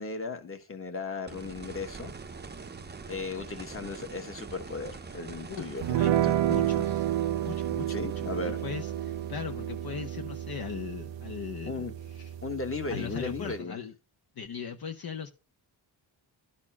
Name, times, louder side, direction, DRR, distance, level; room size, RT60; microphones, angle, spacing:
voice 1, 0.0-2.1 3.1-6.3 6.7-6.8 7.9-8.6 11.6-11.9 12.4-13.8, left 3 dB, 25° left, 1.4 m, -36 dB
sound 1, 1.3-12.2 14.5-14.6, right 4 dB, 20° right, 0.7 m, -45 dB
voice 2, 5.5-7.1 7.4-12.3 12.9-13.9 14.4-15.3, left 7 dB, 50° left, 0.7 m, -39 dB
sound 2, 5.8-13.6, right 12 dB, 65° right, 0.6 m, -31 dB
12.0 x 4.2 x 5.8 m
wide cardioid pair, 145°, 47 cm